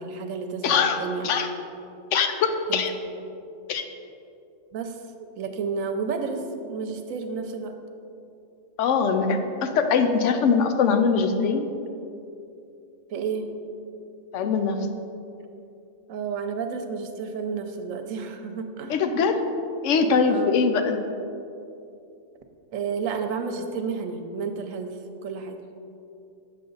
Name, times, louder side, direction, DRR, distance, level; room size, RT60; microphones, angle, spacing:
voice 1, 0.0-1.3 2.7-2.8 4.7-7.7 13.1-13.5 16.1-18.9 20.3-20.6 22.7-25.6, right 5 dB, 80° right, 6 dB, 1.1 m, -31 dB
voice 2, 0.6-1.0 1.2-1.5 2.1-2.9 3.7-3.8 8.8-11.7 14.3-14.9 18.9-19.4 19.8-21.0, left 5 dB, 70° left, 7 dB, 0.9 m, -22 dB
7.8 x 6.7 x 3.9 m, 2.7 s
omnidirectional pair, 1.4 m